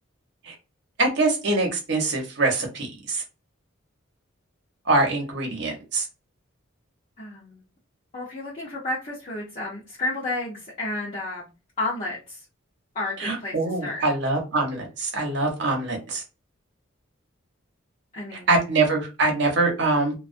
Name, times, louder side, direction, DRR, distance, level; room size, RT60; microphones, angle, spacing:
voice 1, 1.0-3.2 4.9-6.0 13.2-16.2 18.5-20.1, right 3 dB, 55° right, 1 dB, 0.8 m, -24 dB
voice 2, 7.2-7.6 8.1-11.5 11.8-12.4 12.9-14.1 18.1-18.6, left 2 dB, 35° left, -6 dB, 0.6 m, -31 dB
2.2 x 2.2 x 2.5 m, 0.28 s
head